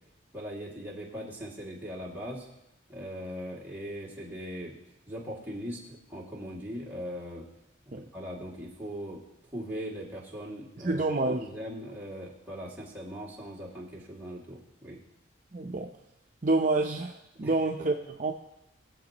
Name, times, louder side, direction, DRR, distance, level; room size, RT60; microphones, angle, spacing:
voice 1, 0.3-2.5 2.9-4.8 5.1-7.5 7.9-9.2 9.5-15.0 17.4-17.5, equal, 10° right, -6 dB, 2.3 m, -40 dB
voice 2, 10.8-11.5 15.5-15.9 16.4-18.3, right 2 dB, 40° right, 1 dB, 0.6 m, -28 dB
21.5 x 7.3 x 3.0 m, 0.90 s
head